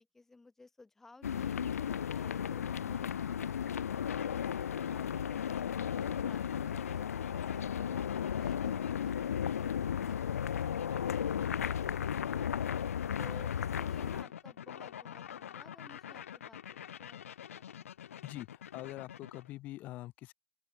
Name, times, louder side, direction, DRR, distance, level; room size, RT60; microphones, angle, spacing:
voice 1, 0.0-4.3 13.2-16.6 16.9-17.2 17.5-17.9, left 3 dB, 5° left, 2.2 m, -57 dB
sound 1, 1.2-14.2, left 8 dB, 90° left, 0.7 m, -34 dB
sound 2, 4.1-19.5, left 9 dB, 65° left, 1.1 m, -48 dB
sound 3, 4.6-11.9, right 21 dB, 25° right, 4.6 m, -67 dB
voice 2, 18.2-20.3, left 16 dB, 20° left, 2.0 m, -44 dB
open air
hypercardioid pair, 170°, 8 cm